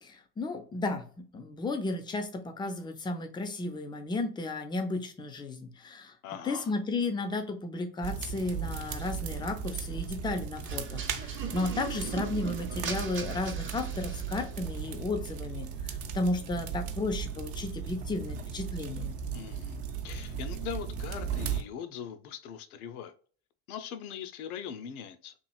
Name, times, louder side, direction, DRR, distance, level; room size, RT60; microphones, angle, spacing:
voice 1, 0.0-1.1 1.3-6.1 6.4-19.1, left 2 dB, 10° left, 0.3 m, -33 dB
voice 2, 6.2-6.7 19.3-23.1 23.7-25.3, left 8 dB, 75° left, 0.5 m, -41 dB
sound 1, 8.0-21.6, right 7 dB, 65° right, 0.6 m, -36 dB
sound 2, 10.7-14.6, right 6 dB, 25° right, 0.6 m, -40 dB
3.0 x 2.4 x 2.3 m
hypercardioid pair, 65°, 44 cm